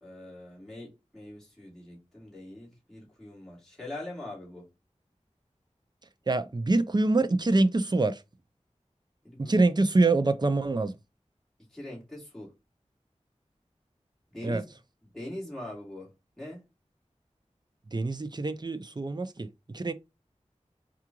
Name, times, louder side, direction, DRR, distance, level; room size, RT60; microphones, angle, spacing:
voice 1, 0.0-4.7 9.2-9.6 11.7-12.5 14.3-14.6 15.1-16.1 16.4-16.6, left 1 dB, 5° left, 2.3 m, -42 dB
voice 2, 6.3-8.2 9.4-10.9 14.4-14.6 17.9-19.5 19.7-19.9, right 2 dB, 35° right, 0.5 m, -25 dB
4.7 x 2.4 x 2.9 m
wide cardioid pair, 50°, 12 cm